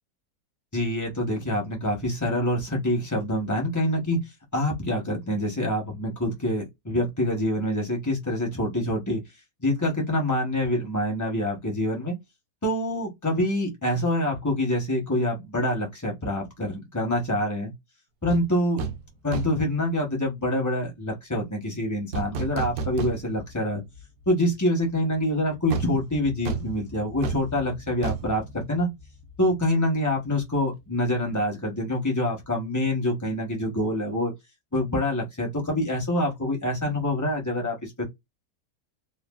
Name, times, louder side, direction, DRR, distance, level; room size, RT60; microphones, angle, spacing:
voice 1, 0.7-4.2 4.5-9.2 9.6-12.1 12.6-17.7 18.2-18.8 19.2-23.8 24.3-28.9 29.4-34.3 34.7-38.0, left 1 dB, 20° left, 0.4 m, -26 dB
sound 1, 18.3-18.4 18.8-19.0 19.3-19.7 22.1-23.6 23.9-24.0 25.7-29.4 29.6-29.8, right 4 dB, 70° right, 0.9 m, -32 dB
3.1 x 2.2 x 2.3 m
omnidirectional pair, 2.0 m